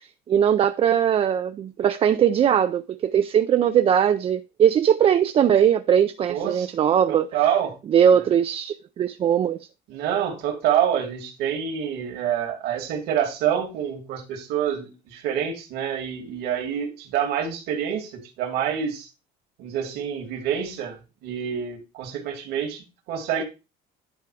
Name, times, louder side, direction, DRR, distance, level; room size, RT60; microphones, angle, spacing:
voice 1, 0.0-7.3 7.9-9.6, right 9 dB, 35° right, 0.4 m, -20 dB
voice 2, 6.3-6.7 7.1-7.8 9.9-19.1 19.6-23.4, right 9 dB, 80° right, 2.6 m, -27 dB
10.5 x 3.5 x 4.9 m
cardioid pair, 135°, 17 cm